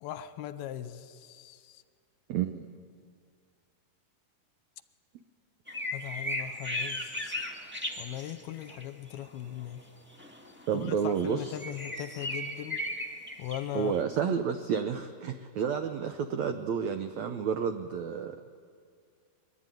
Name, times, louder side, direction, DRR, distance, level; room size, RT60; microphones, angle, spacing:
voice 1, 0.0-1.8 5.9-7.4 8.0-9.8 10.7-12.8 13.4-13.9 14.2-14.4, left 12 dB, 80° left, 12 dB, 2.8 m, -39 dB
voice 2, 2.3-2.7 10.7-11.5 13.7-18.4, right 7 dB, 85° right, 8 dB, 1.6 m, -30 dB
sound 1, 5.7-8.8 9.1-9.3 10.1-14.0, left 1 dB, 10° right, 0.5 m, -36 dB
23.0 x 22.0 x 9.2 m, 2.2 s
omnidirectional pair, 4.4 m